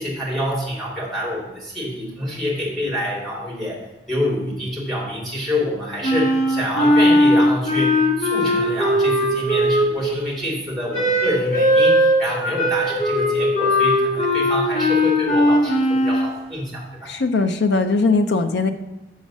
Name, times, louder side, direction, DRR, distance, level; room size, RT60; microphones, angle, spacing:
voice 1, 0.0-17.1, left 1 dB, ahead, -4 dB, 2.4 m, -27 dB
Wind instrument woodwind instrument, 6.0-10.2 10.9-16.3, equal, 40° left, 1.9 m, -18 dB
voice 2, 17.1-18.7, left 3 dB, 85° left, 7 dB, 0.6 m, -19 dB
6.3 x 5.7 x 7.1 m, 0.99 s
head